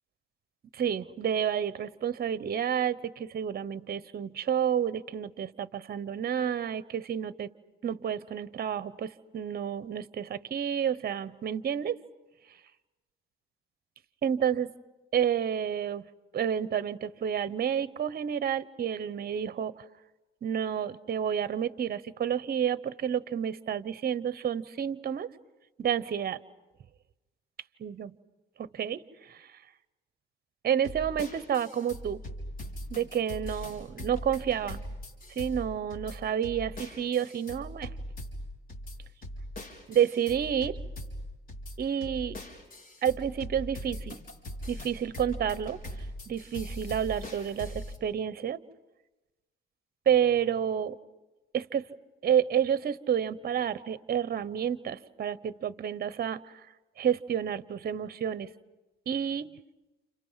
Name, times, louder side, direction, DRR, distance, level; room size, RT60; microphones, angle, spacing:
voice 1, 0.7-7.5 7.8-12.0 14.2-14.7 15.1-16.0 16.3-19.8 20.4-25.3 25.8-26.4 27.8-28.1 28.6-29.5 30.6-32.2 32.9-34.8 35.3-37.9 39.9-40.8 41.8-42.4 43.0-44.2 44.7-45.8 46.3-48.6 50.1-51.0 51.5-51.9 52.2-56.5 57.0-58.5 59.1-59.5, right 8 dB, 50° right, 16 dB, 1.0 m, -30 dB
sound 1, 30.8-48.0, equal, 45° left, 4.3 m, -41 dB
30.0 x 29.0 x 5.8 m, 1.1 s
cardioid pair, 90°, 20 cm